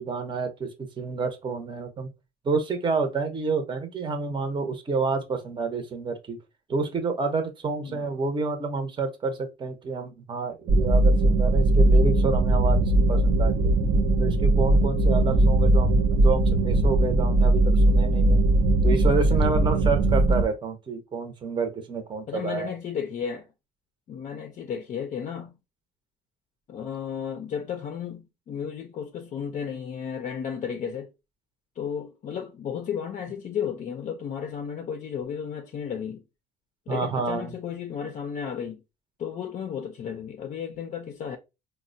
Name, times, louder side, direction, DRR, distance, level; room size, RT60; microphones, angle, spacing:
voice 1, 0.0-2.1 2.4-6.4 6.7-13.7 14.2-18.4 18.8-22.7 36.9-37.5, right 4 dB, 30° right, 0.7 m, -29 dB
sound 1, 10.7-20.4, right 2 dB, 65° right, 0.5 m, -20 dB
voice 2, 15.2-15.7 22.3-23.5 24.1-25.6 26.7-31.1 31.8-36.2 36.9-38.8 39.2-41.4, left 7 dB, 45° left, 0.4 m, -33 dB
4.1 x 2.1 x 2.6 m
cardioid pair, 110°, 17 cm